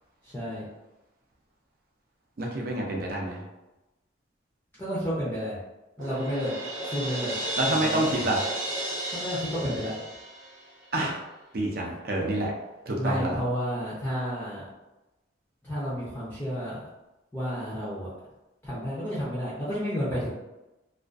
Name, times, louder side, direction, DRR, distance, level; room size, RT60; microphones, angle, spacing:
voice 1, 0.2-0.6 4.8-5.6 6.0-6.5 6.8-7.3 7.6-8.2 9.1-10.0 13.0-14.7 15.6-16.8 17.3-18.1 18.6-20.3, equal, 10° left, -9 dB, 0.5 m, -31 dB
voice 2, 2.4-3.4 7.6-8.4 10.9-11.2 11.5-12.5 12.9-13.4, right 1 dB, 50° right, -1 dB, 0.5 m, -27 dB
Crash cymbal, 6.0-10.9, right 1 dB, 85° right, 0.8 m, -33 dB
2.4 x 2.3 x 2.4 m, 1.0 s
head